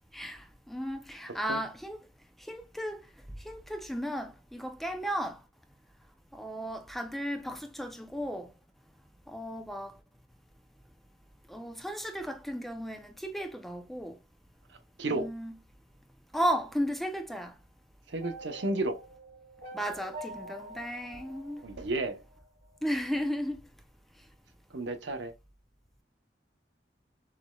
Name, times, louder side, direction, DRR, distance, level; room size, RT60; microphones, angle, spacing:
voice 1, 0.1-2.0 2.4-3.1 3.4-5.4 6.3-8.5 9.3-10.0 11.5-14.2 15.1-15.6 16.3-17.5 19.7-21.6 22.8-23.6, equal, ahead, 0.6 m, -34 dB
voice 2, 15.0-15.3 18.1-19.0 21.6-22.2 24.7-25.3, right 2 dB, 70° right, 0.9 m, -32 dB
sound 1, 18.2-22.4, right 1 dB, 50° right, 2.8 m, -46 dB
6.7 x 3.2 x 2.3 m
head